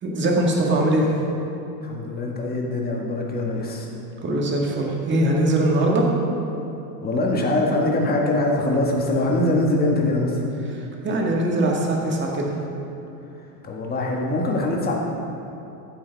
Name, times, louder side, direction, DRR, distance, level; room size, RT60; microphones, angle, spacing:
voice 1, 0.0-1.1 4.2-6.1 10.7-12.5, right 1 dB, 25° right, -1 dB, 1.7 m, -21 dB
voice 2, 1.8-3.9 7.0-10.4 13.6-14.9, left 2 dB, 20° left, -1 dB, 1.7 m, -23 dB
14.5 x 8.1 x 3.5 m, 2.8 s
supercardioid pair, 120°, 48 cm